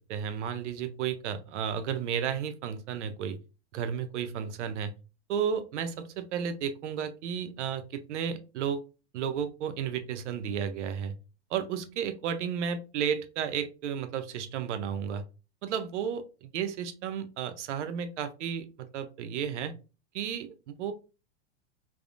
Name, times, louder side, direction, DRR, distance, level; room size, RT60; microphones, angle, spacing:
voice 1, 0.1-3.4 3.7-4.9 5.3-8.8 9.1-11.1 11.5-15.2 15.6-18.7 18.9-19.7 20.1-20.9, right 8 dB, 90° right, 10 dB, 0.6 m, -33 dB
3.4 x 2.0 x 2.4 m, 0.32 s
supercardioid pair, 145°, 34 cm